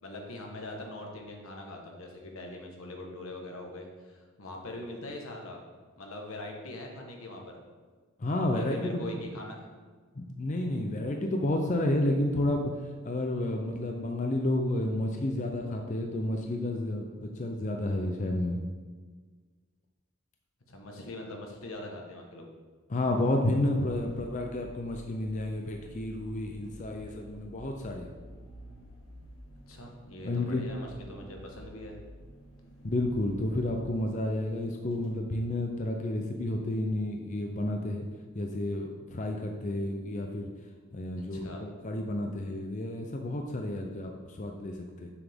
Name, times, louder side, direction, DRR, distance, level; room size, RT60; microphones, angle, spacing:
voice 1, 0.0-5.6 6.0-7.6 8.5-9.7 20.7-22.5 29.7-32.0 41.2-41.6, left 1 dB, 80° left, 1 dB, 1.3 m, -42 dB
voice 2, 8.2-9.0 10.1-12.7 13.0-18.6 22.9-28.1 30.2-30.6 32.8-38.0 38.3-40.5 40.9-45.1, left 1 dB, 35° left, 3 dB, 0.5 m, -31 dB
sound 1, 23.0-35.2, equal, 65° left, 1.5 m, -50 dB
7.0 x 6.9 x 3.6 m, 1.5 s
head